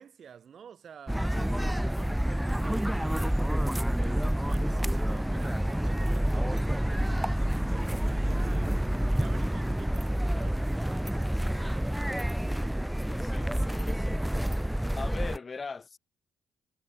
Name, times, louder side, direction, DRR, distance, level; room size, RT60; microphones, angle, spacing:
voice 1, 0.0-3.4 3.9-12.9, right 8 dB, 55° right, 7.6 m, -49 dB
sound 1, 1.1-15.4, equal, 5° right, 0.3 m, -28 dB
voice 2, 1.3-1.8 13.0-14.3 15.0-16.0, left 4 dB, 35° left, 1.6 m, -41 dB
cardioid pair, 90°, 0 cm